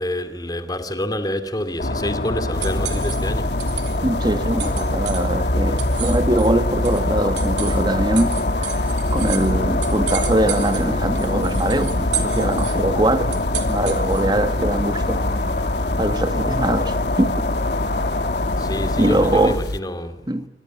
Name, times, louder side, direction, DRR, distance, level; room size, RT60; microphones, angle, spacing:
voice 1, 0.0-3.5 18.6-20.3, left 1 dB, 20° left, 2.6 m, -27 dB
sound 1, 1.5-14.4, right 11 dB, 80° right, 3.4 m, -34 dB
sound 2, 1.8-19.6, left 2 dB, 50° left, 2.0 m, -24 dB
sound 3, 2.5-19.8, left 1 dB, 65° left, 1.2 m, -28 dB
voice 2, 4.0-15.2 16.0-17.3 19.0-19.6 20.3-20.5, right 1 dB, 25° right, 1.8 m, -22 dB
27.5 x 23.5 x 7.3 m
head